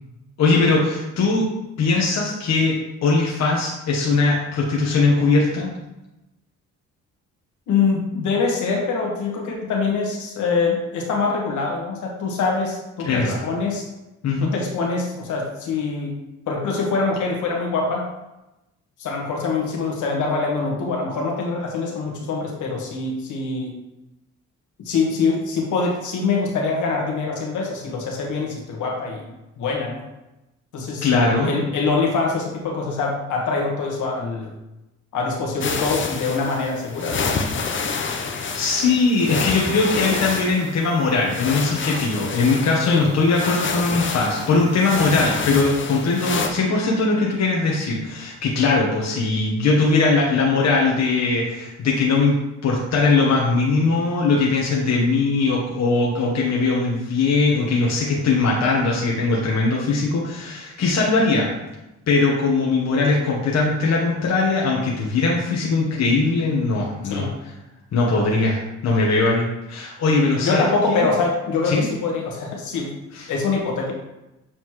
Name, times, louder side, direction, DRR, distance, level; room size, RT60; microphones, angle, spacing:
voice 1, 0.4-1.5 1.8-5.7 13.0-13.4 14.2-14.5 31.0-31.5 38.1-61.5 62.1-67.3 67.9-71.1 71.6-71.8 73.1-73.3, left 3 dB, 60° left, -3 dB, 1.2 m, -20 dB
voice 2, 7.7-13.8 14.4-16.2 16.5-18.0 19.0-23.7 24.8-29.2 29.6-30.0 30.7-31.1 31.4-34.5 35.1-37.3 42.8-43.1 67.1-67.3 70.4-72.9 73.3-73.9, left 4 dB, 75° left, -1 dB, 1.5 m, -24 dB
sound 1, 35.6-46.5, left 5 dB, 40° left, 0.8 m, -28 dB
7.5 x 4.1 x 3.1 m, 0.97 s
cardioid pair, 90°, 30 cm